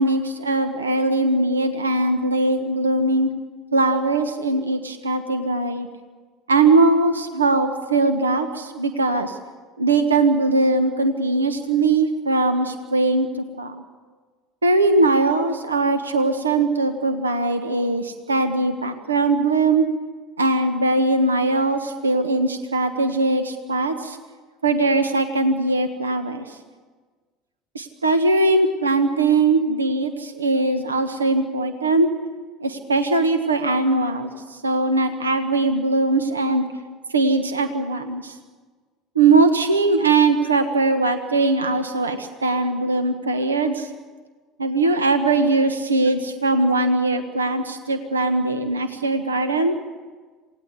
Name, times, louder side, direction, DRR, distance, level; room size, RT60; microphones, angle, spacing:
voice 1, 0.0-3.3 3.7-5.9 6.5-9.4 9.8-13.3 13.6-13.8 14.6-19.9 20.4-24.2 24.6-26.6 27.7-32.1 32.6-36.6 37.1-38.3 39.1-43.9 44.6-49.8, right 3 dB, 85° right, 9 dB, 1.3 m, -20 dB
27.5 x 18.0 x 8.2 m, 1.4 s
figure-of-eight pair, 65°, 0 cm